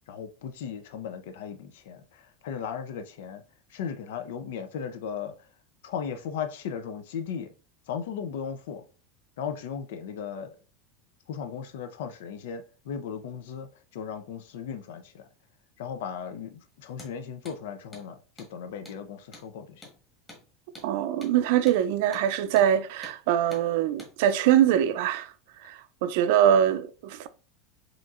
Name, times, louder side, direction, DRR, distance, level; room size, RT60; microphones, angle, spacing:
voice 1, 0.1-3.4 3.7-5.3 5.8-7.5 7.9-8.8 9.4-10.5 11.3-15.3 15.8-19.8, left 7 dB, 85° left, 0.5 m, -36 dB
Hammer, 16.9-17.1 17.4-17.6 17.9-18.1 18.4-18.5 18.8-19.0 19.3-19.5 19.8-20.0 20.3-20.4 20.7-20.9 21.2-21.3 21.7-21.8 22.1-22.3 22.6-22.7 23.0-23.2 23.5-23.7 24.0-24.1, left 1 dB, 10° left, 1.2 m, -47 dB
voice 2, 20.8-25.3 25.6-27.3, right 10 dB, 65° right, 0.4 m, -23 dB
4.9 x 2.9 x 2.4 m
supercardioid pair, 155°, 0 cm